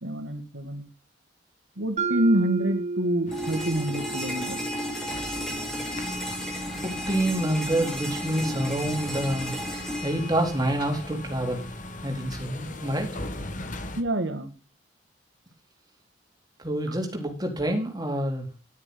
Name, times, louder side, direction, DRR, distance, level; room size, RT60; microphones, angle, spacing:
voice 1, 0.0-0.9 1.8-4.6 14.0-14.5 16.9-17.0, right 1 dB, 80° right, 7 dB, 2.1 m, -27 dB
Mallet percussion, 2.0-6.0, right 4 dB, 40° right, 1.8 m, -33 dB
sound 1, 3.3-14.0, left 1 dB, 45° left, 1.6 m, -39 dB
sound 2, 3.3-11.3, equal, ahead, 4.9 m, -34 dB
voice 2, 6.8-11.7 12.0-13.1 16.6-18.5, right 1 dB, 20° right, 2 dB, 3.9 m, -27 dB
11.5 x 9.9 x 3.9 m, 0.32 s
head